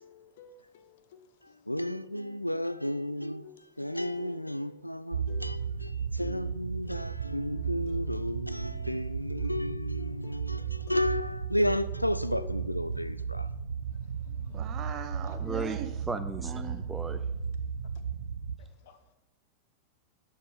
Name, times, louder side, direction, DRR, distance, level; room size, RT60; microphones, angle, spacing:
voice 1, 0.0-1.6 3.4-3.9 4.2-4.4 5.3-5.7 6.8-7.0 7.5-8.1 8.6-8.9 9.3-9.5 10.0-10.8 12.3-12.5 18.8-19.0, left 8 dB, 55° left, 0.9 m, -50 dB
voice 2, 1.7-3.5 3.8-13.5, left 1 dB, 90° left, 0.4 m, -33 dB
sound 1, 5.1-18.6, right 6 dB, 70° right, 0.6 m, -35 dB
voice 3, 14.3-15.9 16.4-16.8, right 8 dB, 30° right, 1.2 m, -40 dB
voice 4, 15.4-17.2, right 3 dB, 10° right, 0.6 m, -36 dB
11.0 x 6.6 x 4.9 m
figure-of-eight pair, 90°, 0 cm